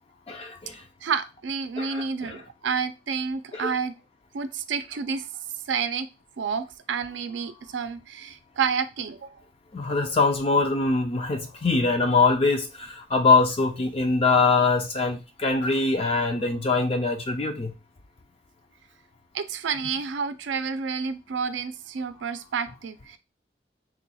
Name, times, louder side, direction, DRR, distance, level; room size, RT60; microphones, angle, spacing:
voice 1, 0.3-0.8 1.8-2.4 3.5-3.7 9.7-17.7, left 3 dB, 30° left, 0.4 m, -23 dB
voice 2, 1.0-3.9 4.3-5.3 5.7-6.1 6.4-9.4 19.3-23.2, right 6 dB, 85° right, 0.4 m, -29 dB
3.6 x 2.3 x 4.1 m
head